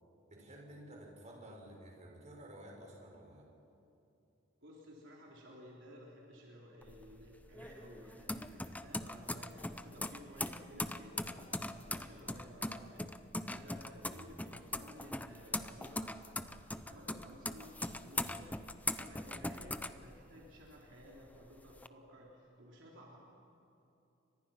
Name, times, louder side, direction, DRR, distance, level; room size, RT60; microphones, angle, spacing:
voice 1, 0.3-3.5 14.0-14.4, right 1 dB, 35° right, -1 dB, 5.3 m, -53 dB
voice 2, 4.6-13.1 13.4-16.4 16.7-18.6 18.9-23.2, equal, 65° right, -3 dB, 4.0 m, -55 dB
sound 1, 6.8-20.6 21.0-21.9, left 2 dB, 10° left, 0.7 m, -41 dB
29.5 x 24.5 x 5.9 m, 2.8 s
head